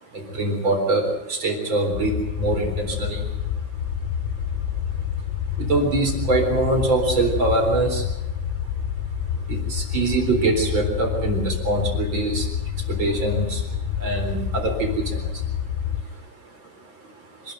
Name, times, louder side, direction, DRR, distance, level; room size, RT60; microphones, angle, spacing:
voice 1, 0.1-3.6 4.9-5.0 5.6-8.3 8.7-8.8 9.3-17.5, right 2 dB, 25° right, 3 dB, 3.9 m, -25 dB
sound 1, 1.9-16.0, left 8 dB, 85° left, 3.5 m, -28 dB
26.0 x 12.5 x 9.2 m, 0.98 s
omnidirectional pair, 5.8 m